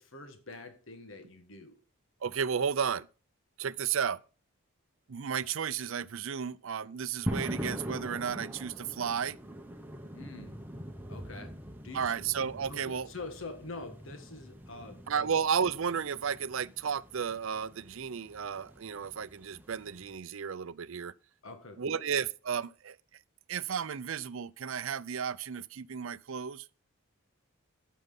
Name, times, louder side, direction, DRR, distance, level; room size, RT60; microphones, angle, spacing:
voice 1, 0.0-1.8 10.1-10.6 11.1-11.6 11.8-12.2 12.7-15.3 21.4-22.0, left 3 dB, 65° left, 1.5 m, -45 dB
voice 2, 2.2-3.1 3.6-4.2 5.1-9.4 11.9-13.1 15.1-21.1 21.8-23.0 23.5-26.6, right 7 dB, 65° right, 0.5 m, -33 dB
sound 1, 7.3-20.2, equal, 10° right, 0.9 m, -43 dB
9.2 x 9.0 x 3.8 m
head